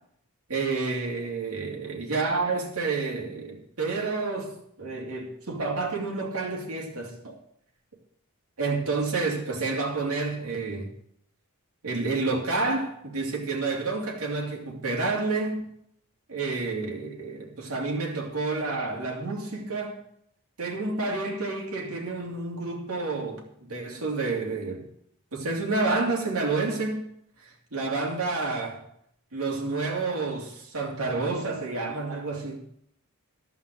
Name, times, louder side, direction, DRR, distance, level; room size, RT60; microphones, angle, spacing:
voice 1, 0.5-7.4 8.6-10.9 11.8-15.6 16.3-20.0 20.6-24.9 25.3-27.0 27.4-28.8 29.3-32.6, right 3 dB, 70° right, 2.7 m, -29 dB
13.5 x 5.7 x 7.6 m
head